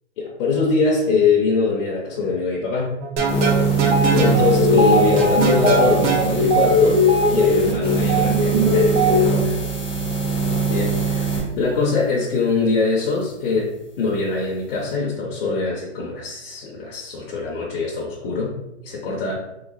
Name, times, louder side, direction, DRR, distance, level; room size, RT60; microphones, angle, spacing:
voice 1, 0.2-3.0 4.1-7.0 7.3-9.5 10.7-13.7 14.0-19.3, left 4 dB, 50° left, -3 dB, 0.8 m, -22 dB
sound 1, 3.0-4.4 5.2-6.3, right 5 dB, 40° right, 0.9 m, -22 dB
sound 2, 3.2-11.4, right 5 dB, 15° left, 0.7 m, -23 dB
sound 3, 3.8-9.6, left 1 dB, 65° right, 1.3 m, -19 dB
3.3 x 3.0 x 2.5 m, 0.91 s
hypercardioid pair, 130°, 36 cm